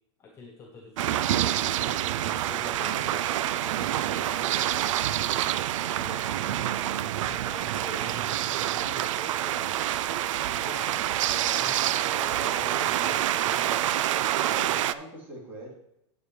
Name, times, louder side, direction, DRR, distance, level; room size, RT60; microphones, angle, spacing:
voice 1, 0.2-4.9 5.8-6.9 7.3-9.8 10.5-11.8 12.4-13.5, left 3 dB, 15° left, 0 dB, 0.8 m, -46 dB
sound 1, 1.0-14.9, right 12 dB, 80° right, 0.4 m, -27 dB
Wind instrument woodwind instrument, 2.6-7.4, right 4 dB, 60° right, 1.6 m, -49 dB
voice 2, 12.1-13.9 14.4-15.7, right 2 dB, 10° right, -5 dB, 3.0 m, -43 dB
9.4 x 8.5 x 3.2 m, 0.81 s
supercardioid pair, 165°, 16 cm